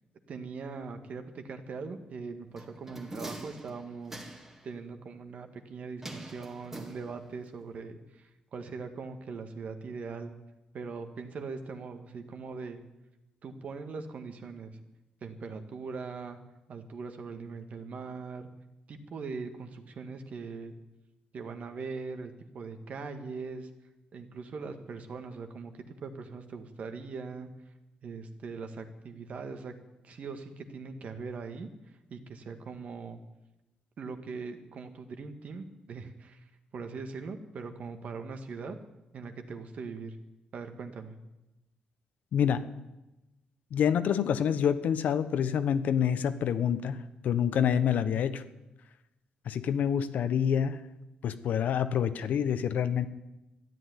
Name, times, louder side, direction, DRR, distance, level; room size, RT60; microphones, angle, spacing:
voice 1, 0.3-4.2 4.6-10.3 10.7-12.8 13.4-14.8 15.2-16.4 16.7-18.5 18.9-20.7 21.3-23.7 24.1-27.5 28.0-29.7 30.0-31.7 32.1-33.2 34.0-38.8 39.1-40.2 40.5-41.2, right 4 dB, 55° right, 7 dB, 1.9 m, -41 dB
sound 1, 2.6-4.7 6.0-7.5 7.7-7.8, right 1 dB, 15° right, 2.0 m, -44 dB
voice 2, 42.3-42.6 43.7-48.4 49.4-50.8 51.2-53.1, left 8 dB, 70° left, 11 dB, 1.1 m, -27 dB
13.5 x 11.0 x 9.9 m, 0.97 s
cardioid pair, 115°, 3 cm